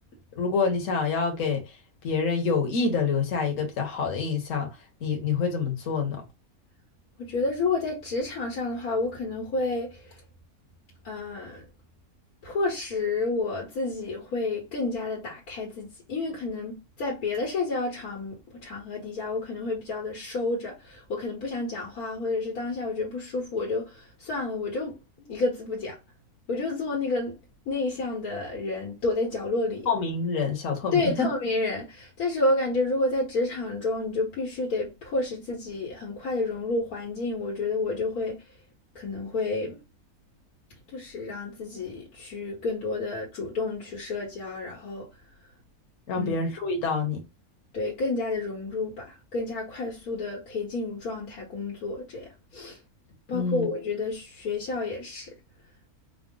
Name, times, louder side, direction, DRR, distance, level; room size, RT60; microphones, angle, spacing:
voice 1, 0.3-1.6 2.0-4.7 5.0-6.2 29.9-31.3 46.1-47.2 53.3-53.7, left 5 dB, 60° left, 1.4 m, -27 dB
voice 2, 7.2-10.2 11.0-11.6 12.4-26.0 26.5-27.4 27.7-29.9 30.9-38.4 39.0-39.8 40.9-45.1 46.2-46.4 47.7-52.8 53.3-55.3, left 3 dB, 80° left, 1.7 m, -30 dB
5.0 x 2.0 x 3.7 m
omnidirectional pair, 1.6 m